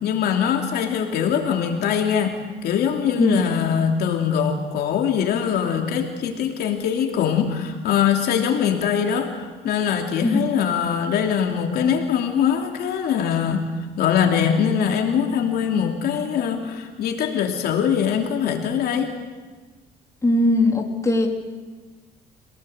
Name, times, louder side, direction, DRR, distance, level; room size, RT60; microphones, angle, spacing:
voice 1, 0.0-13.7 14.0-19.1, left 8 dB, 70° left, 2 dB, 3.0 m, -22 dB
voice 2, 20.2-21.3, left 2 dB, 20° left, 1 dB, 3.3 m, -19 dB
27.5 x 18.0 x 8.0 m, 1.3 s
cardioid pair, 110°, 17 cm